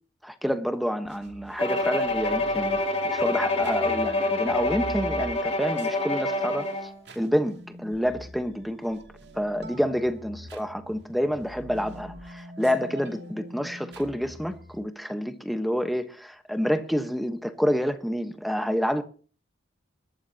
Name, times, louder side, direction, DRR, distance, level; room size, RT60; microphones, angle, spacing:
voice 1, 0.4-2.8 3.1-9.0 9.3-19.0, equal, ahead, 1.2 m, -28 dB
sound 1, 1.1-14.8, right 1 dB, 60° right, 2.6 m, -44 dB
Bowed string instrument, 1.6-6.9, left 2 dB, 30° left, 2.2 m, -26 dB
22.5 x 13.0 x 2.9 m
head